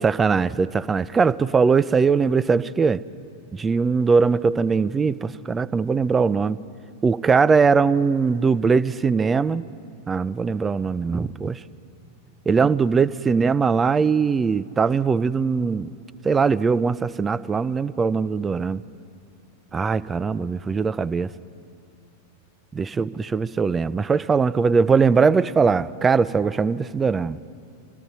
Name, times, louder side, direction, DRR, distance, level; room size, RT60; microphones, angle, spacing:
voice 1, 0.0-3.0 3.5-6.6 7.0-9.6 10.1-11.6 12.5-15.9 16.2-18.8 19.7-21.3 22.7-27.4, right 5 dB, 15° right, 17 dB, 0.3 m, -21 dB
24.5 x 14.0 x 4.1 m, 2.5 s
figure-of-eight pair, 90°, 0 cm